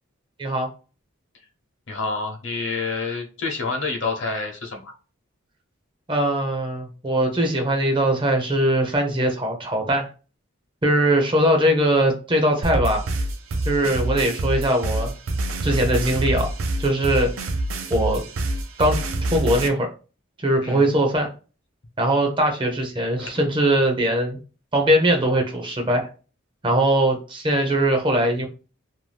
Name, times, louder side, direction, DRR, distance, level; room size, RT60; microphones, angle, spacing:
voice 1, 1.9-4.9 20.6-20.8 23.2-23.4, left 4 dB, 60° left, 3 dB, 0.8 m, -28 dB
voice 2, 6.1-10.1 10.8-13.0 13.7-15.1 15.6-16.5 16.8-17.3 17.9-18.2 18.8-19.0 19.3-19.9 20.4-21.3 22.0-24.4 24.7-26.1 26.6-28.5, right 1 dB, 25° right, 3 dB, 0.6 m, -21 dB
sound 1, 12.6-19.7, right 2 dB, 75° right, 0.5 m, -26 dB
2.6 x 2.1 x 3.2 m, 0.34 s
head